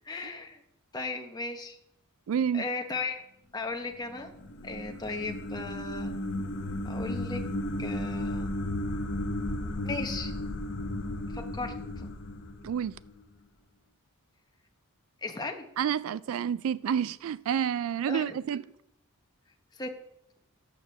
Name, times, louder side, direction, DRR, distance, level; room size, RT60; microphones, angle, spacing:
voice 1, 0.1-0.6 0.9-1.8 2.5-3.2 3.5-4.3 4.6-6.1 6.8-7.4 7.8-8.5 9.8-10.3 11.3-12.1 15.2-15.6 18.1-18.4 19.7-19.9, left 3 dB, 20° left, 0.9 m, -36 dB
voice 2, 2.3-2.7 12.6-13.0 15.8-18.6, right 8 dB, 65° right, 0.3 m, -29 dB
sound 1, 4.0-13.2, left 1 dB, 55° left, 0.8 m, -34 dB
8.0 x 6.7 x 6.4 m
head